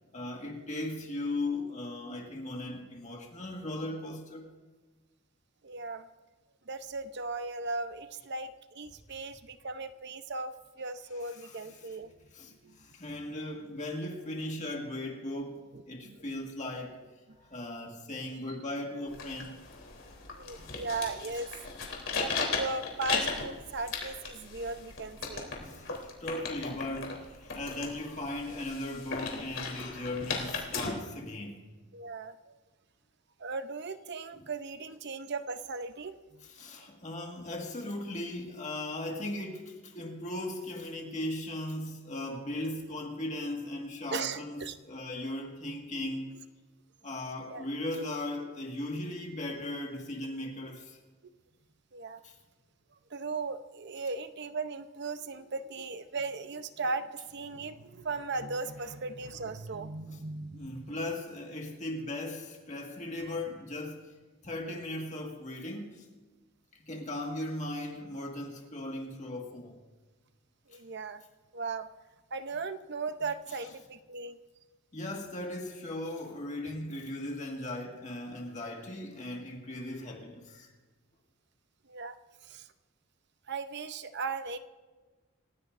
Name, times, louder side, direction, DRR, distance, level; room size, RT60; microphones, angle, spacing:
voice 1, 0.1-4.5 9.1-9.2 11.3-11.9 12.3-17.0 17.4-19.6 20.2-20.3 25.5-31.6 36.5-46.3 47.0-51.0 52.2-52.4 60.1-60.2 60.5-64.2 64.4-66.1 66.7-69.8 70.7-70.8 74.9-80.7, left 1 dB, 35° left, 1.8 m, -38 dB
voice 2, 5.6-6.1 6.7-12.3 12.6-12.8 15.7-16.2 20.3-21.8 22.2-25.5 31.9-32.5 33.4-36.4 44.1-44.8 47.5-47.6 50.6-50.7 51.9-52.2 53.1-60.9 70.7-71.2 71.5-71.9 72.3-74.4 81.9-82.2 82.4-82.7 83.5-84.6, right 3 dB, 55° right, 0.8 m, -37 dB
sound 1, 19.1-30.9, left 4 dB, 65° left, 3.4 m, -37 dB
28.0 x 16.0 x 2.6 m
head